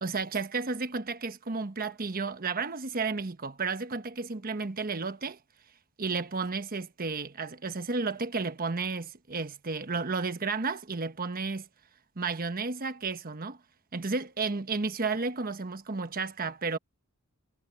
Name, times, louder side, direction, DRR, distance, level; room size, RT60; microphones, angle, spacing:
voice 1, 0.0-5.4 6.0-11.7 12.2-13.6 13.9-16.8, right 4 dB, 45° right, 1.1 m, -32 dB
head